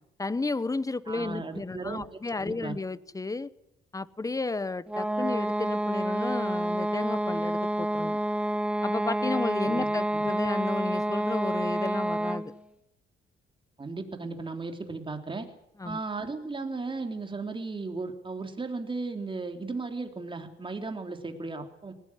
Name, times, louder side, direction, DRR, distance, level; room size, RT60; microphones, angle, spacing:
voice 1, 0.2-3.5 3.9-8.2 8.8-12.5 15.8-16.0, left 3 dB, 15° left, 18 dB, 0.9 m, -32 dB
voice 2, 1.1-2.8 9.6-9.9 10.1-10.3 13.8-15.5 15.8-21.9, right 3 dB, 25° right, 5 dB, 3.6 m, -36 dB
sound 1, 4.9-12.6, right 1 dB, 5° right, 1.3 m, -28 dB
19.5 x 18.5 x 9.9 m, 0.83 s
cardioid pair, 90°, 20 cm